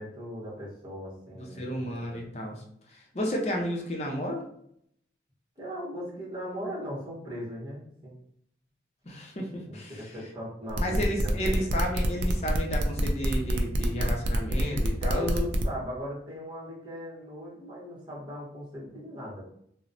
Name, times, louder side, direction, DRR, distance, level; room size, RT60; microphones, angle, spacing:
voice 1, 0.0-2.3 5.6-8.2 9.6-11.8 15.0-19.4, equal, 25° right, -6 dB, 0.9 m, -39 dB
voice 2, 1.6-2.6 2.9-4.4 9.1-10.0 10.8-15.4, equal, 35° left, 1 dB, 0.5 m, -32 dB
sound 1, 10.7-15.6, right 1 dB, 75° right, 0.4 m, -28 dB
3.0 x 2.0 x 2.6 m, 0.69 s
head